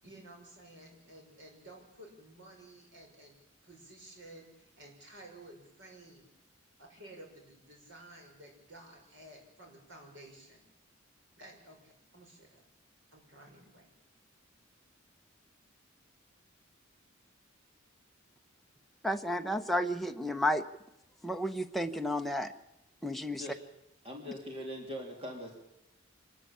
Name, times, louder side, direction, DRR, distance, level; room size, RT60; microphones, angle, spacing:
voice 1, 0.0-6.3 6.8-10.6 11.4-12.6 13.1-13.9, right 1 dB, 65° right, 1 dB, 6.4 m, -53 dB
voice 2, 19.0-20.7 21.2-22.5 23.0-23.4, left 1 dB, ahead, 4 dB, 0.9 m, -32 dB
voice 3, 24.0-25.6, equal, 30° right, 0 dB, 3.4 m, -41 dB
26.0 x 13.0 x 8.8 m, 0.87 s
head